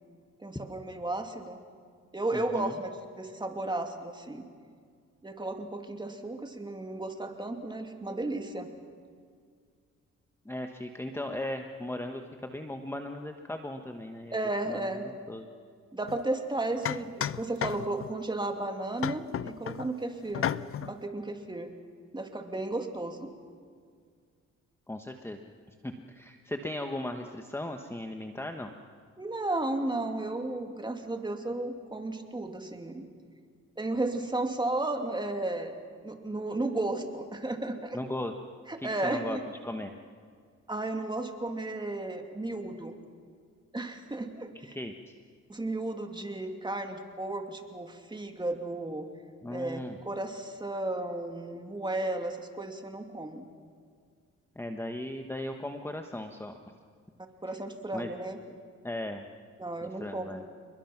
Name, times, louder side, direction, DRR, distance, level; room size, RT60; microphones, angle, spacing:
voice 1, 0.4-1.6 2.1-4.5 5.2-8.7 14.3-15.1 15.9-20.5 20.8-21.7 22.1-23.3 29.2-33.1 33.8-35.8 36.0-38.0 38.7-39.4 40.7-43.0 43.7-44.7 45.5-49.1 49.5-53.5 57.4-58.4 59.6-60.4, right 2 dB, 15° right, 4 dB, 2.7 m, -34 dB
voice 2, 2.3-2.7 10.4-14.4 14.7-15.0 15.3-15.4 24.9-25.4 25.8-28.7 37.9-38.3 38.8-39.4 39.6-39.9 44.7-45.1 49.4-50.0 54.5-56.6 57.9-58.1 58.8-59.2 59.8-60.4, left 1 dB, 10° left, 5 dB, 1.3 m, -37 dB
sound 1, 16.1-16.2 16.9-18.2 19.0-19.9 20.3-20.9, left 10 dB, 45° left, 0.6 m, -33 dB
28.0 x 22.0 x 6.0 m, 2.1 s
cardioid pair, 90°, 30 cm